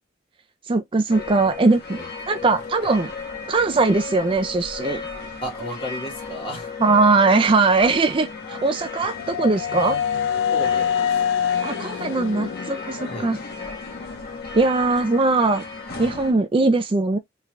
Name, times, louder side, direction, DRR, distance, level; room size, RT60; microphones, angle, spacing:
voice 1, 0.7-2.0 2.3-3.1 3.5-5.0 6.8-10.0 11.6-13.4 14.5-15.6 16.0-17.2, right 3 dB, 30° right, 0.4 m, -20 dB
sound 1, 1.1-16.3, left 4 dB, 55° left, 1.5 m, -35 dB
voice 2, 5.4-6.7 10.5-11.2 13.1-13.3, equal, 30° left, 2.4 m, -33 dB
sound 2, 8.3-14.2, left 8 dB, 90° left, 0.3 m, -26 dB
3.7 x 3.3 x 3.2 m
head